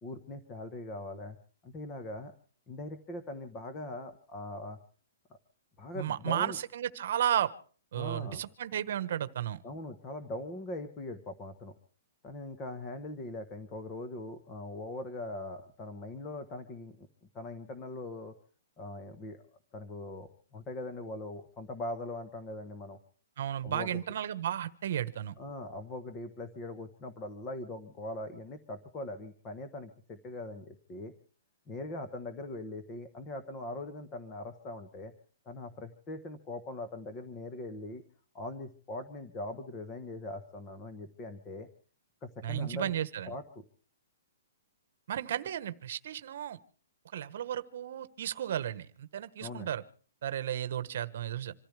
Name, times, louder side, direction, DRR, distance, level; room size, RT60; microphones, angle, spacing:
voice 1, 0.0-1.4 1.6-2.3 2.7-4.8 5.8-6.6 8.0-8.4 9.6-11.7 12.2-17.1 17.3-18.3 18.8-19.4 19.7-23.0 23.6-24.0 25.4-31.1 31.7-35.1 35.4-38.0 38.3-41.7 42.2-42.9 43.3-43.6 49.4-49.7, left 2 dB, 15° left, 7 dB, 1.2 m, -41 dB
voice 2, 5.9-7.5 7.9-9.6 23.4-25.3 42.4-43.3 45.1-46.6 47.1-49.8 50.2-51.5, right 10 dB, 45° right, 13 dB, 1.3 m, -33 dB
27.0 x 14.5 x 3.3 m, 0.41 s
hypercardioid pair, 180°, 0 cm